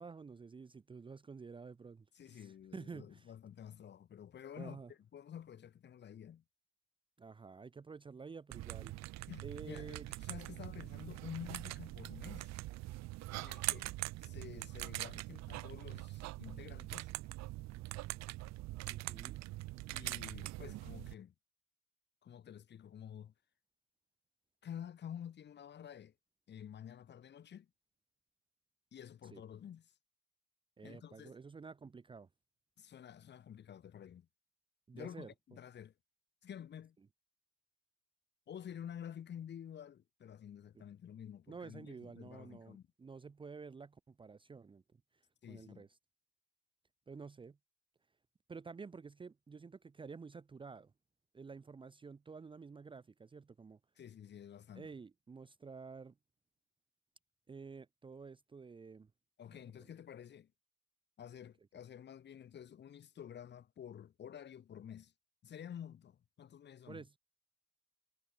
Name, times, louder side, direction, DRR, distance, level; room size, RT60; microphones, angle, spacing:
voice 1, 0.0-3.3 4.6-4.9 7.2-8.9 9.4-10.1 18.9-19.4 29.3-29.4 30.8-32.3 34.9-35.3 41.5-44.8 45.1-45.9 47.1-47.6 48.5-50.9 51.3-53.8 54.7-56.1 57.5-59.1 59.8-59.9 66.9-67.1, right 5 dB, 15° right, 1.2 m, -50 dB
voice 2, 2.1-6.4 9.3-12.5 13.3-13.9 14.2-17.1 19.9-21.3 22.2-23.3 24.6-26.1 26.5-27.7 28.9-29.9 30.8-31.4 32.8-34.3 34.9-35.9 36.4-37.0 38.5-42.9 45.4-45.9 54.0-54.9 59.4-60.5 61.2-65.1 65.4-67.0, left 9 dB, 35° left, 3.3 m, -50 dB
sound 1, 8.5-21.1, right 18 dB, 65° right, 0.8 m, -43 dB
cardioid pair, 165°, 30 cm